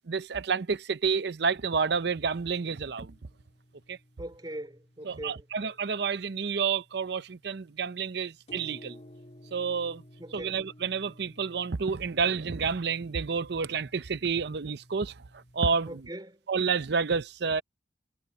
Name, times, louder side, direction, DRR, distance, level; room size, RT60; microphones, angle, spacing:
voice 1, 0.1-3.1 3.9-4.0 5.0-9.0 9.5-10.0 10.3-15.1 15.5-16.0 16.5-17.6, right 5 dB, 60° right, 0.6 m, -29 dB
sound 1, 1.4-15.8, left 1 dB, 35° left, 2.7 m, -55 dB
voice 2, 4.2-5.5 10.2-10.6 15.9-16.4, right 1 dB, 25° right, 3.5 m, -41 dB
head